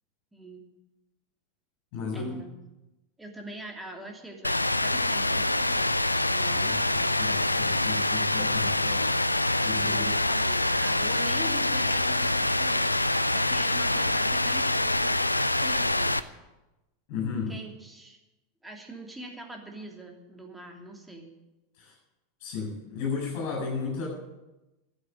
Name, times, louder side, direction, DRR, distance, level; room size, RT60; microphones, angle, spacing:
voice 1, 0.3-0.7 2.1-2.5 3.2-5.9 6.3-7.2 9.7-16.2 17.5-18.2 18.6-21.3, right 2 dB, 10° right, 1 dB, 2.9 m, -43 dB
voice 2, 1.9-2.3 6.4-9.1 9.6-10.1 17.1-17.5 21.8-21.9 22.4-24.1, left 5 dB, 50° left, -1 dB, 7.2 m, -34 dB
Rain, 4.4-16.2, left 2 dB, 85° left, 0.5 m, -25 dB
13.0 x 9.0 x 9.2 m, 1.0 s
figure-of-eight pair, 85°, 0 cm